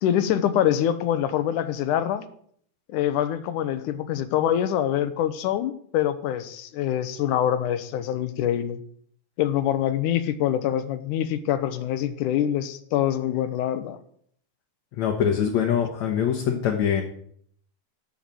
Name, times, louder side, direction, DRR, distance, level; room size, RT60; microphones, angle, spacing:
voice 1, 0.0-2.2 2.9-8.8 9.4-14.0, left 10 dB, 80° left, 12 dB, 2.4 m, -25 dB
voice 2, 15.0-17.0, left 8 dB, 65° left, 3 dB, 2.4 m, -23 dB
12.5 x 6.6 x 9.1 m, 0.63 s
omnidirectional pair, 3.7 m